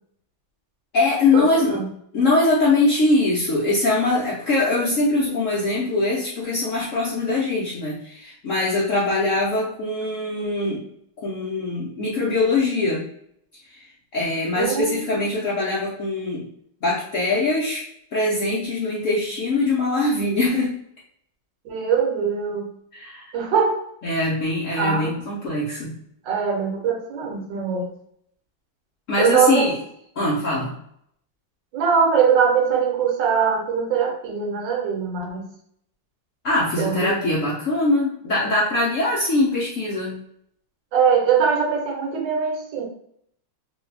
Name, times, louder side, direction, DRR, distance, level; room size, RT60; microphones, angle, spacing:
voice 1, 0.9-1.8 2.1-10.8 11.2-13.1 13.8-13.9 14.1-16.5 16.8-17.8 18.1-20.8 22.9-23.3 24.0-26.0 29.1-29.8 30.2-30.7 36.4-40.2, left 2 dB, 80° left, -5 dB, 0.7 m, -22 dB
voice 2, 14.6-15.2 21.6-22.7 23.3-23.8 24.8-25.2 26.2-27.9 29.2-29.7 31.7-35.4 36.8-37.2 40.9-42.8, right 6 dB, 70° right, 0 dB, 1.4 m, -22 dB
3.3 x 2.3 x 3.3 m, 0.70 s
omnidirectional pair, 2.2 m